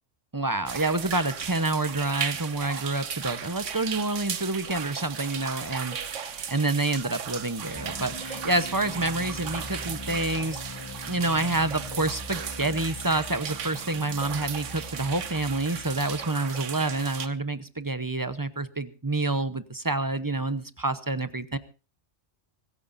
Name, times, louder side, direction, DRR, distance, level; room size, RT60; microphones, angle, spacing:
voice 1, 0.3-21.6, right 2 dB, 20° right, 12 dB, 0.8 m, -28 dB
sound 1, 0.7-17.3, right 7 dB, 75° right, 1.4 m, -36 dB
sound 2, 7.7-17.3, left 2 dB, 20° left, 1.5 m, -42 dB
25.5 x 14.5 x 2.6 m, 0.34 s
omnidirectional pair, 1.3 m